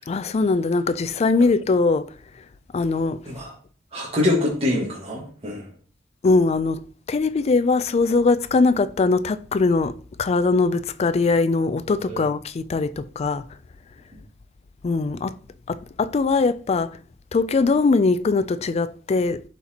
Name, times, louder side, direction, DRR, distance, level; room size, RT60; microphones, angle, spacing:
voice 1, 0.1-2.1 2.7-3.2 6.2-6.8 7.1-13.4 14.8-15.3 15.7-16.9 17.3-19.4, left 3 dB, 35° left, 0.3 m, -21 dB
voice 2, 3.9-5.7 12.1-12.2, left 2 dB, 30° right, 1.5 m, -24 dB
11.0 x 4.3 x 2.8 m
head